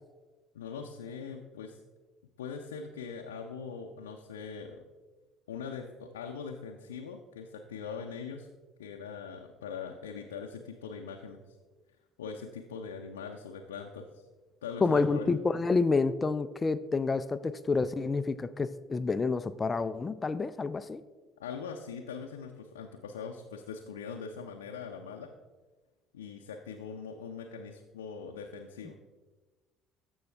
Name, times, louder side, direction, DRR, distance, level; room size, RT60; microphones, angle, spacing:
voice 1, 0.5-1.8 2.4-4.8 5.5-8.5 8.8-11.4 12.2-14.2 14.6-15.4 21.4-25.3 26.1-29.0, left 6 dB, 80° left, 2 dB, 0.6 m, -41 dB
voice 2, 14.8-21.0, left 4 dB, 25° left, 12 dB, 0.4 m, -28 dB
14.5 x 5.4 x 3.4 m, 1.3 s
figure-of-eight pair, 60°, 0 cm